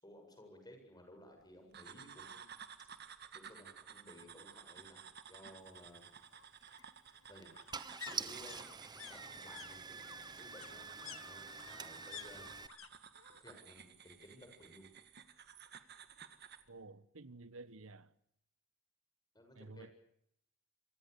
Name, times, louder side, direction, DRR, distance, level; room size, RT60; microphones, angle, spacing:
voice 1, 0.0-2.5 3.3-6.1 7.3-7.5 8.0-8.7 9.1-12.5 13.4-14.9 19.3-19.9, left 1 dB, 20° left, 7.8 m, -57 dB
sound 1, 1.7-16.7, right 7 dB, 50° right, 1.9 m, -55 dB
sound 2, 2.0-2.1 2.5-2.6 2.8-3.8 5.1-12.9 13.1-13.7 14.0-15.0 15.3-15.4, left 9 dB, 70° left, 1.6 m, -54 dB
Car / Engine starting, 6.6-6.8 7.4-7.5 7.7-12.7, right 5 dB, 20° right, 1.1 m, -46 dB
voice 2, 16.7-18.1 19.5-19.9, right 3 dB, 80° right, 1.3 m, -52 dB
27.5 x 23.5 x 6.8 m
head